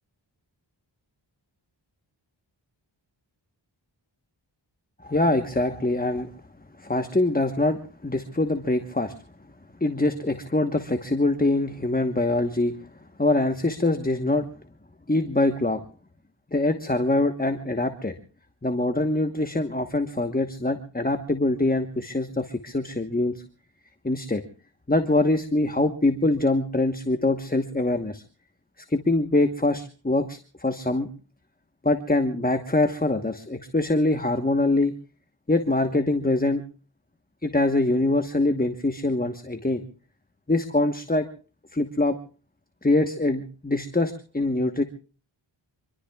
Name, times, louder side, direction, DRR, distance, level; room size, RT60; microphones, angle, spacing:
voice 1, 5.0-6.3 6.8-9.1 9.8-12.8 13.2-14.5 15.1-15.8 16.5-18.1 18.6-23.4 24.0-24.4 24.9-28.2 28.9-31.1 31.8-34.9 35.5-36.6 37.4-39.8 40.5-41.2 41.7-42.1 42.8-44.8, left 2 dB, 20° left, 7 dB, 1.1 m, -24 dB
25.5 x 24.0 x 2.3 m, 0.38 s
wide cardioid pair, 55°, 47 cm